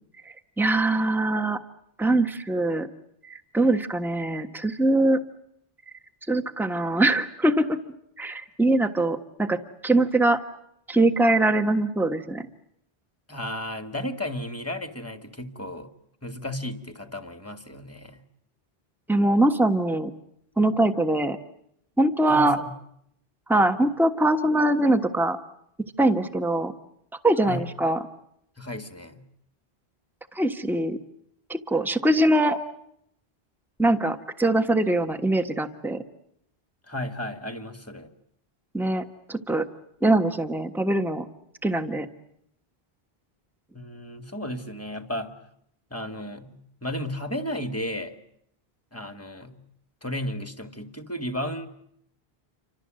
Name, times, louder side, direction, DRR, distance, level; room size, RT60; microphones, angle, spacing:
voice 1, 0.2-1.6 2.0-2.9 3.3-5.2 6.3-7.8 8.2-10.4 10.9-12.5 19.1-20.1 20.6-21.4 22.0-22.6 23.5-25.4 26.0-26.7 27.2-28.0 30.3-31.0 31.5-32.6 33.8-36.0 38.7-39.7 40.0-41.3 41.6-42.1, right 1 dB, ahead, 8 dB, 1.4 m, -22 dB
voice 2, 13.3-15.9 16.2-18.2 22.3-22.7 27.4-27.6 28.6-29.3 36.9-38.1 43.7-45.4 45.9-48.2 48.9-49.6 50.0-51.7, left 1 dB, 15° left, 8 dB, 2.1 m, -34 dB
29.0 x 25.0 x 7.7 m, 0.74 s
omnidirectional pair, 1.0 m